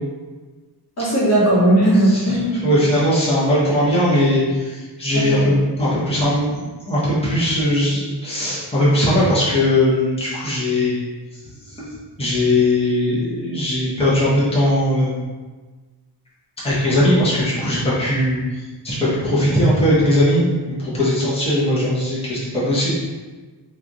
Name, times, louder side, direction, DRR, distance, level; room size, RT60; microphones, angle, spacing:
voice 1, 1.0-2.7 5.3-5.5, right 1 dB, 35° left, -9 dB, 1.2 m, -17 dB
voice 2, 2.0-11.0 11.7-11.9 12.2-15.2 16.6-22.9, left 1 dB, 15° left, -9 dB, 0.9 m, -19 dB
3.1 x 2.5 x 3.9 m, 1.3 s
wide cardioid pair, 160°, 43 cm